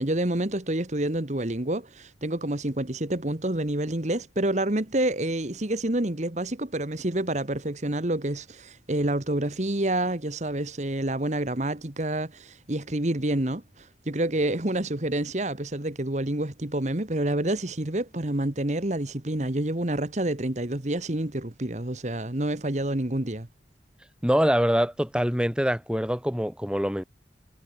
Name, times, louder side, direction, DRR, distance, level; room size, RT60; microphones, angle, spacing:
voice 1, 0.0-23.5, right 1 dB, 40° right, 1.5 m, -28 dB
voice 2, 24.2-27.0, equal, 5° right, 2.9 m, -24 dB
head